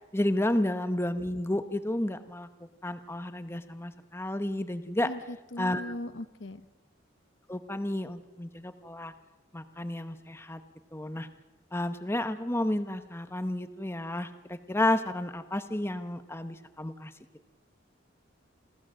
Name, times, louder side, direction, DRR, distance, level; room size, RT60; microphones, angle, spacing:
voice 1, 0.1-2.5 2.8-5.1 5.6-5.9 7.5-9.1 9.5-10.6 10.9-11.3 11.7-17.1, left 1 dB, 15° left, 9 dB, 1.0 m, -31 dB
voice 2, 5.0-6.7, left 1 dB, 65° left, 12 dB, 0.9 m, -39 dB
28.0 x 15.0 x 7.6 m, 1.1 s
head